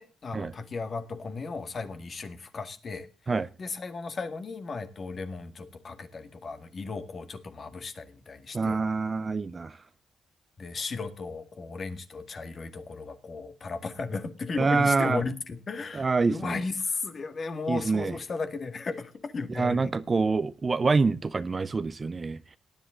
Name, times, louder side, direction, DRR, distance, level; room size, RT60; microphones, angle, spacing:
voice 1, 0.0-3.1 3.6-8.8 10.6-19.9, left 4 dB, 40° left, 1.9 m, -35 dB
voice 2, 8.5-9.7 14.6-15.2 15.9-16.6 17.7-18.1 19.6-22.4, right 4 dB, 25° right, 0.6 m, -26 dB
18.5 x 10.5 x 3.8 m
cardioid pair, 135°, 0 cm